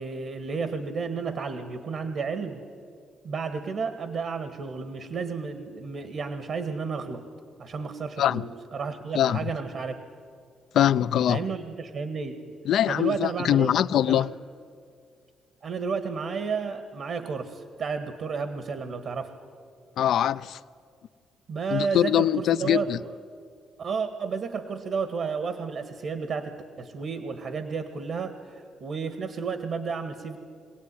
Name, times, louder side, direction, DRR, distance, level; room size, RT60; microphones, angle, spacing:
voice 1, 0.0-2.6 3.2-7.3 7.6-10.0 11.3-12.6 12.9-13.7 14.1-14.3 15.6-19.3 21.5-23.1 23.8-30.4, right 5 dB, 65° right, 1.7 m, -32 dB
voice 2, 10.7-11.4 12.7-14.3 20.0-20.6 21.7-23.0, left 11 dB, 70° left, 0.5 m, -23 dB
24.0 x 17.0 x 9.9 m
cardioid pair, 90°, 0 cm